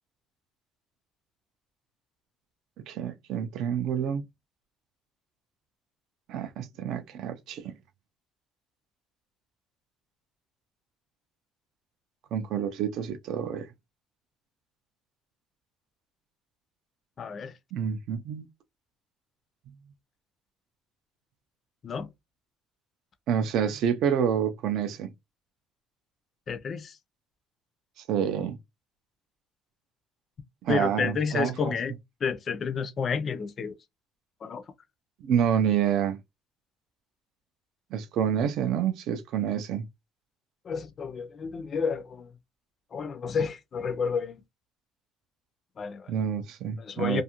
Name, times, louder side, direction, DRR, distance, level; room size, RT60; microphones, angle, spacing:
voice 1, 2.9-4.2 6.3-7.8 12.3-13.7 17.7-18.5 23.3-25.1 28.0-28.6 30.6-31.7 35.2-36.2 37.9-39.9 46.1-47.2, right 8 dB, 60° right, 0.4 m, -28 dB
voice 2, 17.2-17.5 21.8-22.1 26.5-27.0 30.7-31.9 32.2-33.7 34.4-34.6 40.7-42.3 42.9-44.4 45.8-46.1 46.8-47.2, left 5 dB, 30° left, 0.4 m, -30 dB
2.4 x 2.4 x 2.8 m
cardioid pair, 170°, 0 cm